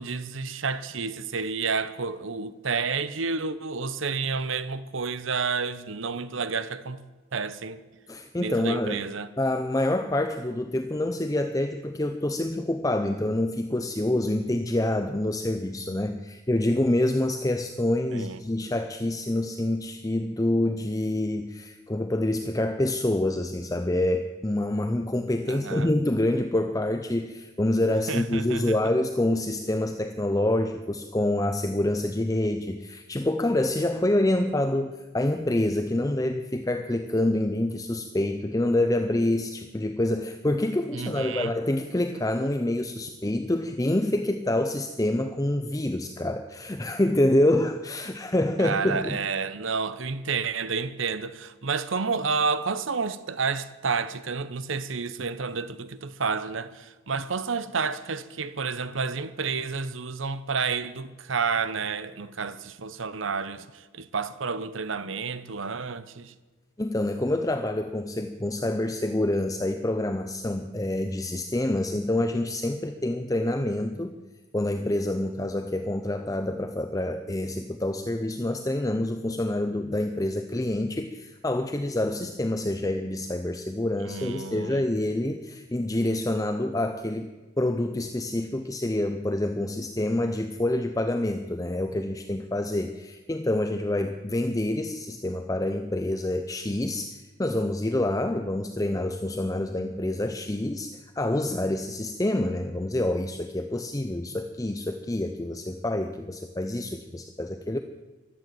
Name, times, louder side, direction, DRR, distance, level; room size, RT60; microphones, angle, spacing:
voice 1, 0.0-7.0 7.3-7.8 8.4-9.3 18.1-18.4 25.5-25.9 28.1-28.8 40.9-41.6 48.6-66.3 84.0-84.9, right 5 dB, 75° right, 0.9 m, -30 dB
voice 2, 8.1-9.0 9.4-49.2 66.8-74.2 74.5-107.8, left 1 dB, 15° left, 0.6 m, -27 dB
15.0 x 12.0 x 7.7 m
head